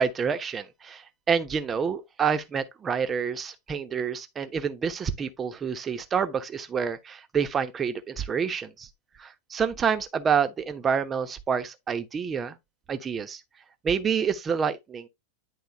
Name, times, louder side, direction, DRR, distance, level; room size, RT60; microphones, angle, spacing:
voice 1, 0.0-8.9 9.2-12.6 12.9-13.4 13.8-15.1, right 6 dB, 20° right, 1.1 m, -28 dB
10.5 x 3.7 x 3.5 m
figure-of-eight pair, 90°, 0 cm